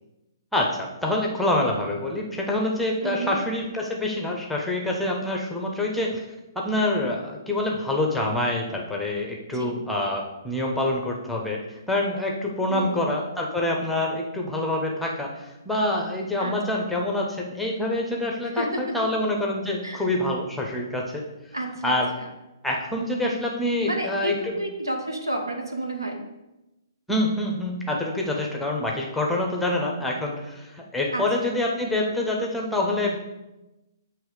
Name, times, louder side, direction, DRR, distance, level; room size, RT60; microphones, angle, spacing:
voice 1, 0.5-6.3 6.5-11.6 11.9-21.2 21.8-22.1 22.6-24.6 27.1-33.2, left 1 dB, ahead, 0 dB, 0.7 m, -26 dB
voice 2, 3.0-3.3 9.5-9.8 12.7-13.0 16.4-16.8 18.5-19.1 19.8-20.1 21.5-22.3 23.8-26.2 31.1-31.5, right 1 dB, 85° right, 2 dB, 0.9 m, -31 dB
7.1 x 3.1 x 4.7 m, 1.0 s
figure-of-eight pair, 130°, 2 cm